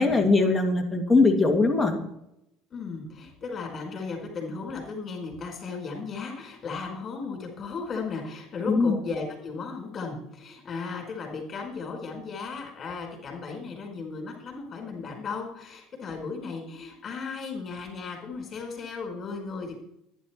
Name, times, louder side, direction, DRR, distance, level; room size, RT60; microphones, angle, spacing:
voice 1, 0.0-2.1 8.7-9.0, left 3 dB, 10° left, 2 dB, 2.3 m, -21 dB
voice 2, 2.7-19.8, left 4 dB, 35° left, 2 dB, 4.7 m, -36 dB
11.0 x 10.0 x 4.4 m, 0.80 s
supercardioid pair, 110°, 0 cm